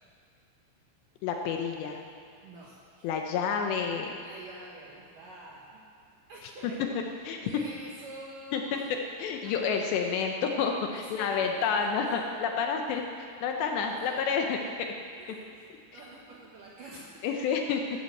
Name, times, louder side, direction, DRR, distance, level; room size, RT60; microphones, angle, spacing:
voice 1, 1.2-2.0 3.0-4.1 7.2-7.5 8.5-8.6 9.2-14.9 15.9-16.0 17.2-17.8, left 6 dB, 75° left, 3 dB, 2.7 m, -29 dB
voice 2, 2.4-3.1 4.2-5.9 6.3-7.0 7.4-9.0 9.4-9.8 10.9-12.3 13.8-14.3 14.5-14.6 15.2-17.2, right 2 dB, 70° right, -3 dB, 2.1 m, -47 dB
14.0 x 12.5 x 7.8 m, 2.3 s
omnidirectional pair, 5.7 m